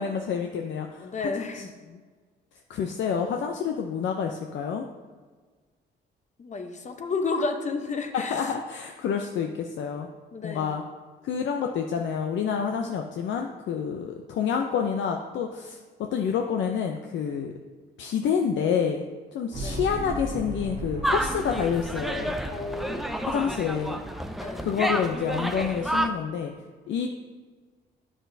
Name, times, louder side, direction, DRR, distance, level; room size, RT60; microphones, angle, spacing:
voice 1, 0.0-1.3 1.5-1.6 1.9-2.0 2.7-4.9 8.1-10.1 10.4-10.8 11.2-15.8 16.1-17.5 18.0-19.1 19.3-22.4 23.3-24.0 24.6-26.5 26.9-27.1, left 7 dB, 70° left, 3 dB, 0.5 m, -28 dB
voice 2, 1.0-1.7 6.4-8.5 10.3-10.7 19.6-19.8 22.5-23.1 24.4-24.7, left 4 dB, 35° left, 5 dB, 0.8 m, -32 dB
sound 1, 19.5-24.3, right 2 dB, 65° right, 1.7 m, -37 dB
sound 2, 21.0-26.1, right 1 dB, ahead, 0.5 m, -30 dB
9.2 x 6.1 x 2.7 m, 1.5 s
cardioid pair, 90°, 20 cm